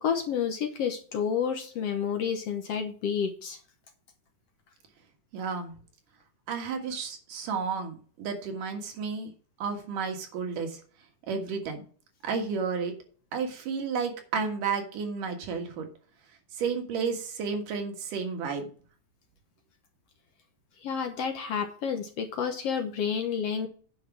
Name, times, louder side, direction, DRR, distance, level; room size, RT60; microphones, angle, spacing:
voice 1, 0.0-3.6 20.8-23.7, left 7 dB, 60° left, 6 dB, 1.8 m, -30 dB
voice 2, 5.3-5.7 6.5-9.3 9.6-10.8 11.3-11.8 12.2-12.9 13.3-15.9 16.5-18.7, right 5 dB, 85° right, 4 dB, 3.3 m, -32 dB
9.8 x 5.2 x 6.0 m, 0.42 s
omnidirectional pair, 3.6 m